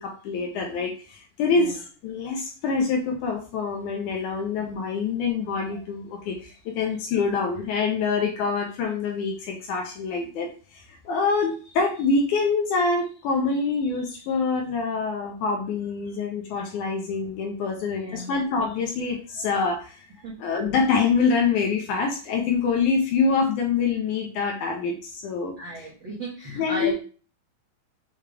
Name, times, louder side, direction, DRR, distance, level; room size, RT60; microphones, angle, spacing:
voice 1, 0.0-20.1 20.4-25.5 26.6-26.9, left 4 dB, 80° left, 1 dB, 1.9 m, -25 dB
voice 2, 17.9-18.3 20.2-20.3 25.6-26.9, right 1 dB, 65° right, -7 dB, 1.1 m, -34 dB
6.6 x 2.4 x 3.3 m, 0.38 s
omnidirectional pair, 4.0 m